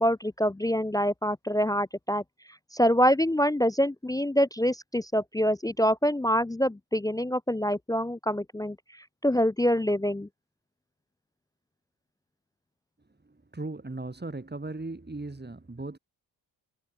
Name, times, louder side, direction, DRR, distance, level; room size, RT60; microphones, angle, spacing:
voice 1, 0.0-2.2 2.7-8.8 9.2-10.3, equal, 10° left, 0.4 m, -25 dB
voice 2, 13.2-16.0, right 2 dB, 20° right, 6.1 m, -37 dB
cardioid pair, 55°, 44 cm